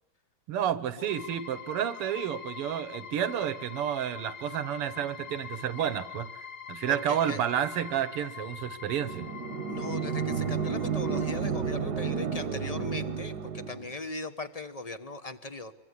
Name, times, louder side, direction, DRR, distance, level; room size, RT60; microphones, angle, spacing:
voice 1, 0.5-6.3 6.7-9.3, right 10 dB, 90° right, 14 dB, 2.1 m, -30 dB
sound 1, 1.1-11.4, left 7 dB, 50° left, 2.0 m, -44 dB
voice 2, 6.9-7.4 9.6-15.7, left 2 dB, 30° left, 11 dB, 0.7 m, -39 dB
sound 2, 9.0-13.9, right 6 dB, 55° right, 1.4 m, -31 dB
25.0 x 23.5 x 9.7 m, 1.0 s
omnidirectional pair, 2.4 m